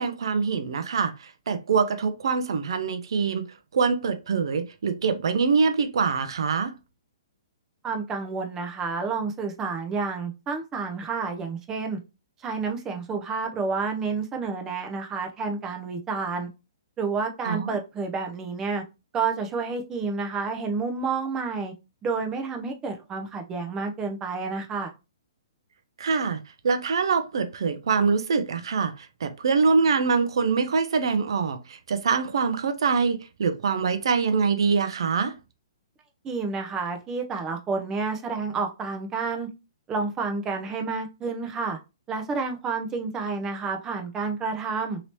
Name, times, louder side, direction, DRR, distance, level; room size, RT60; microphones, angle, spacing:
voice 1, 0.0-6.8 17.4-17.7 26.0-35.3, right 5 dB, 70° right, 0.5 m, -24 dB
voice 2, 7.8-12.0 12.4-16.5 17.0-18.8 19.1-21.7 22.0-24.9 36.2-39.5 39.9-41.8 42.1-45.0, right 4 dB, 20° right, 0.6 m, -29 dB
3.1 x 2.8 x 2.9 m
hypercardioid pair, 135°, 3 cm